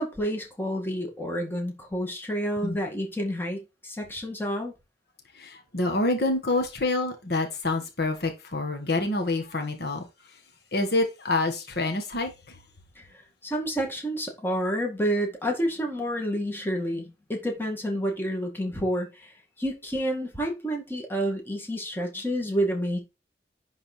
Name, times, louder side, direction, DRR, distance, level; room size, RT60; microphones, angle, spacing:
voice 1, 0.0-4.7 13.0-23.0, equal, 10° left, 2.0 m, -29 dB
voice 2, 5.3-10.4 10.7-12.6, left 2 dB, 60° left, 1.5 m, -27 dB
10.5 x 3.9 x 4.4 m
head